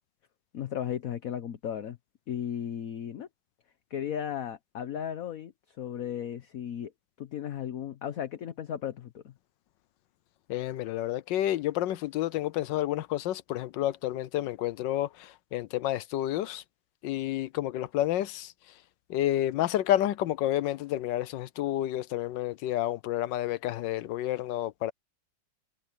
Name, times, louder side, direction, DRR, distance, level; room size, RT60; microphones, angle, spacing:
voice 1, 0.5-2.0 2.3-3.3 3.9-6.9 7.2-9.3, left 9 dB, 55° left, 1.3 m, -35 dB
voice 2, 10.5-16.6 17.0-18.5 19.1-24.9, left 13 dB, 85° left, 1.3 m, -30 dB
omnidirectional pair, 1.9 m